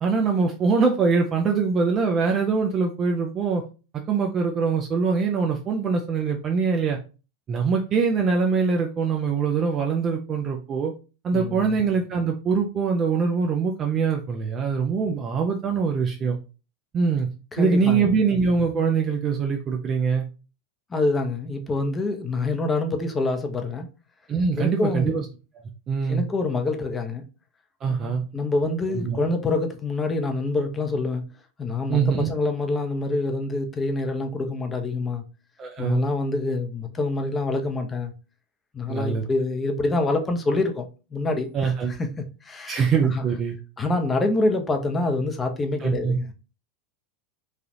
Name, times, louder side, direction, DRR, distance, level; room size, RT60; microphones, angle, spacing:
voice 1, 0.0-3.6 3.9-7.0 7.5-10.9 11.2-16.4 16.9-17.3 17.6-20.3 24.3-25.2 25.9-26.2 27.8-28.2 28.9-29.2 31.9-32.3 35.6-36.0 38.9-39.2 41.5-41.9 42.7-43.6 45.8-46.2, right 5 dB, 35° right, 0.5 m, -23 dB
voice 2, 11.3-11.8 17.5-18.3 20.9-23.9 24.6-25.2 26.1-27.2 27.9-31.2 31.6-35.2 35.8-38.1 38.7-40.9 41.1-43.2 43.8-46.3, left 2 dB, 20° left, 0.6 m, -26 dB
3.2 x 2.3 x 2.6 m
hypercardioid pair, 90°, 0 cm